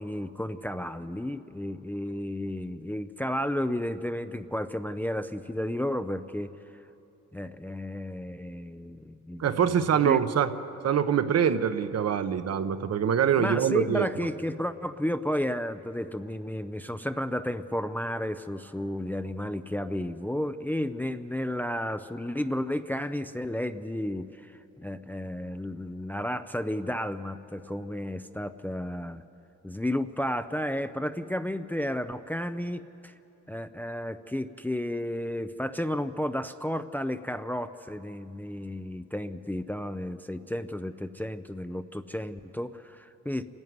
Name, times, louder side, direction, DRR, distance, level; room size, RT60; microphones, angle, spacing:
voice 1, 0.0-6.5 7.3-9.5 10.0-10.2 13.4-24.5 24.8-29.2 29.6-33.1 33.5-43.4, left 1 dB, 5° left, 9 dB, 0.5 m, -32 dB
voice 2, 9.4-10.5 10.8-14.3, right 8 dB, 55° right, 9 dB, 1.1 m, -24 dB
28.0 x 11.0 x 9.5 m, 2.8 s
cardioid pair, 90°, 30 cm